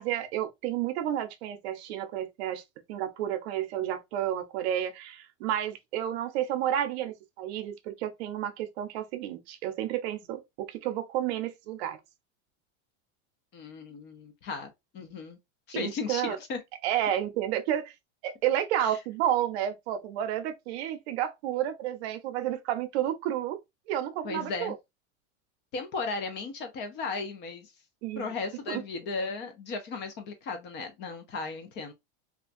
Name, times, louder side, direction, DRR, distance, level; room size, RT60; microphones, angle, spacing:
voice 1, 0.0-2.6 2.9-12.0 15.7-16.4 16.8-17.9 18.2-23.6 23.9-24.8 28.0-28.3 28.7-28.8, right 11 dB, 70° right, 0.6 m, -31 dB
voice 2, 13.5-15.4 15.7-16.6 18.8-19.0 24.2-24.7 25.7-27.7 28.2-31.9, left 4 dB, 30° left, 0.5 m, -36 dB
2.4 x 2.2 x 2.5 m
supercardioid pair, 150°, 34 cm